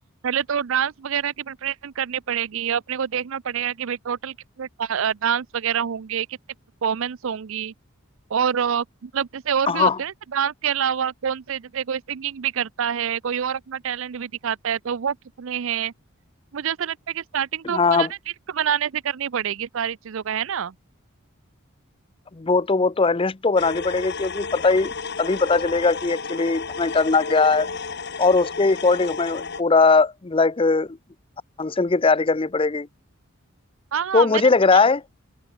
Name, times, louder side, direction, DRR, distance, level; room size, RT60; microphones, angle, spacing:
voice 1, 0.2-6.4 6.8-7.7 8.3-15.9 16.5-18.2 18.5-20.7 33.9-34.4 34.7-34.8, right 8 dB, 65° right, 0.5 m, -26 dB
voice 2, 9.7-10.0 17.7-18.1 22.3-24.9 25.2-27.7 28.2-31.0 31.6-32.9 34.1-35.0, left 4 dB, 25° left, 0.5 m, -20 dB
sound 1, 23.6-29.6, left 4 dB, 50° left, 2.3 m, -32 dB
open air
head